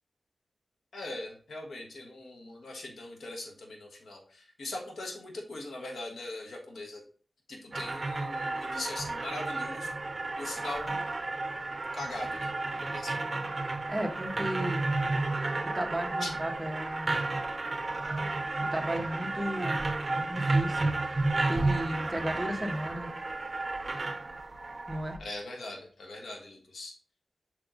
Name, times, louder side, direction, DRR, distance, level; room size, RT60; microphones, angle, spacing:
voice 1, 0.9-7.0 7.5-9.9 10.4-11.0 11.9-12.5 12.8-13.2 16.2-16.3 25.2-26.9, left 2 dB, 90° left, 1 dB, 1.4 m, -40 dB
sound 1, 7.7-25.2, right 2 dB, 40° right, 0.9 m, -32 dB
voice 2, 13.9-14.8 15.6-17.3 18.6-19.8 20.1-20.9 21.5-23.1 24.9-25.2, right 1 dB, 10° right, 2 dB, 1.4 m, -34 dB
6.3 x 4.6 x 3.8 m, 0.43 s
cardioid pair, 65°, 0 cm